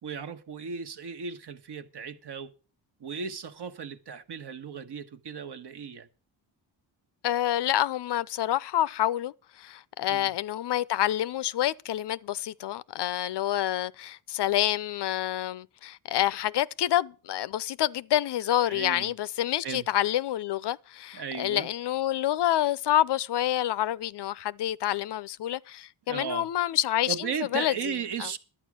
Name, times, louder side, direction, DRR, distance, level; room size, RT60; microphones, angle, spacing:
voice 1, 0.0-2.5 3.0-6.1 10.1-10.3 18.7-19.1 19.6-19.8 21.1-21.7 26.1-26.5 27.1-28.4, right 6 dB, 55° right, 1.2 m, -36 dB
voice 2, 7.2-27.7 28.2-28.3, left 12 dB, 55° left, 0.6 m, -28 dB
11.5 x 8.6 x 6.2 m
cardioid pair, 70°, 49 cm